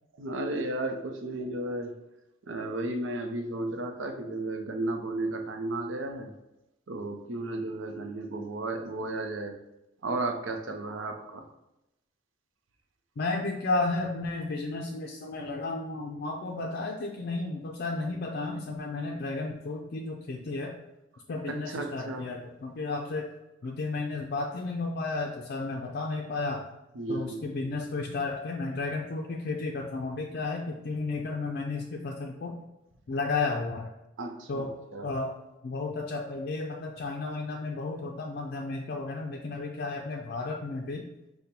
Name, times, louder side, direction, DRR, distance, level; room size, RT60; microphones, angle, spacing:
voice 1, 0.2-2.0 2.5-6.3 6.9-9.6 10.0-11.4 16.6-16.7 21.5-22.3 27.0-27.5 34.2-35.1, right 2 dB, 90° right, 5 dB, 0.6 m, -34 dB
voice 2, 13.2-20.8 21.3-23.3 23.6-26.6 27.1-32.6 33.1-33.9 34.5-34.7 35.0-35.3 35.6-41.0, left 3 dB, 55° left, 1 dB, 0.4 m, -33 dB
5.1 x 2.1 x 4.3 m, 0.92 s
head